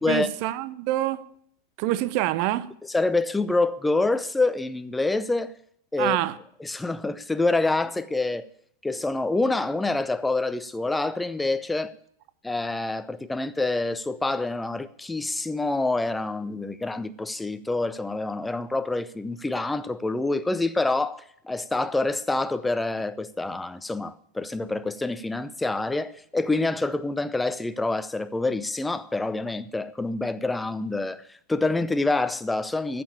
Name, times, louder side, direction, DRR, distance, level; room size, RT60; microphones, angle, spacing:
voice 1, 0.1-1.3 1.8-2.7 6.0-6.4, right 15 dB, 45° right, 0.7 m, -26 dB
voice 2, 2.9-5.5 5.9-6.2 6.6-8.5 8.8-11.9 12.4-33.0, left 2 dB, 5° left, 0.7 m, -26 dB
14.5 x 6.9 x 8.7 m
figure-of-eight pair, 90°, 0 cm